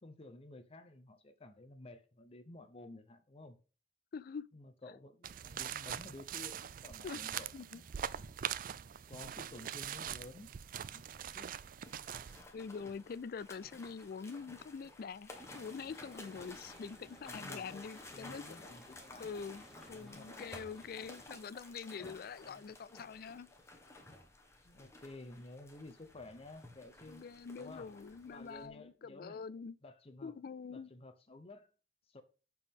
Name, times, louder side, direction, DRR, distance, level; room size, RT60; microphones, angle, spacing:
voice 1, 0.0-3.6 4.5-7.9 9.1-10.5 10.9-11.0 11.3-11.5 12.8-13.0 17.3-17.8 18.1-19.3 19.7-20.6 22.0-22.1 22.4-22.7 24.6-27.2 27.5-27.9 28.2-29.5 29.8-30.3 30.7-31.7 32.1-32.2, left 2 dB, 35° left, 0.7 m, -53 dB
voice 2, 4.1-4.5 7.0-7.2 7.5-7.8 12.5-18.7 19.2-19.6 19.9-23.5 27.1-29.8 30.2-30.9, left 5 dB, 55° left, 0.4 m, -45 dB
sound 1, 5.2-12.4, right 9 dB, 50° right, 0.4 m, -42 dB
sound 2, 11.8-28.7, left 2 dB, 15° left, 1.4 m, -54 dB
sound 3, 15.3-21.2, equal, ahead, 3.8 m, -58 dB
14.0 x 4.6 x 3.6 m
head